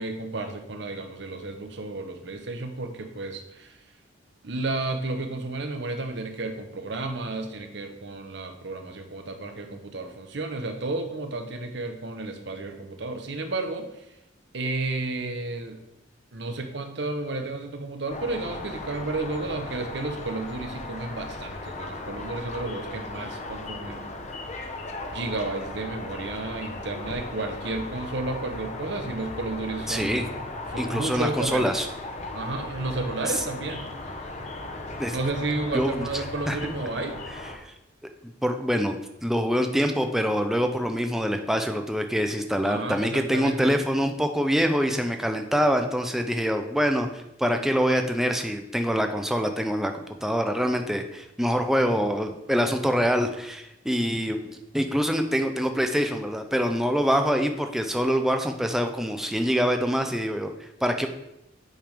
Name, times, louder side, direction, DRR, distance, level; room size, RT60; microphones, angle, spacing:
voice 1, 0.0-3.8 4.4-14.0 14.5-15.8 16.3-24.2 25.1-30.3 30.7-31.7 32.3-33.9 35.1-37.2 42.6-43.7, right 2 dB, 60° right, 6 dB, 0.9 m, -32 dB
sound 1, 18.1-37.6, left 2 dB, 35° left, 0.7 m, -37 dB
voice 2, 29.9-30.2 30.8-31.9 33.3-33.4 35.0-35.2 35.7-36.1 36.5-36.6 37.6-37.7 38.2-61.1, equal, ahead, 5 dB, 0.4 m, -25 dB
8.8 x 3.5 x 5.0 m, 0.88 s
head